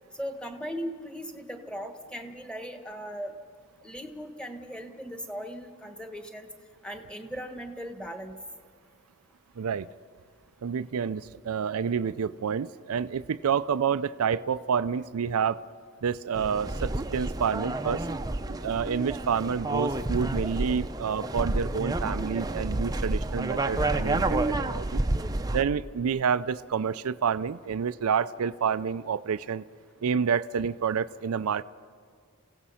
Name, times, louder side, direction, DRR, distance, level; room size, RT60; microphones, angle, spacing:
voice 1, 0.1-3.3 3.8-6.5 6.8-8.4 20.7-20.8, equal, 5° left, 6 dB, 1.4 m, -38 dB
voice 2, 9.6-9.9 10.6-15.6 16.0-18.1 18.6-24.4 24.6-25.0 25.5-29.6 30.0-31.6, right 6 dB, 85° right, 15 dB, 0.5 m, -28 dB
sound 1, 16.3-25.6, right 2 dB, 15° right, 0.6 m, -30 dB
28.5 x 16.5 x 5.7 m, 2.1 s
head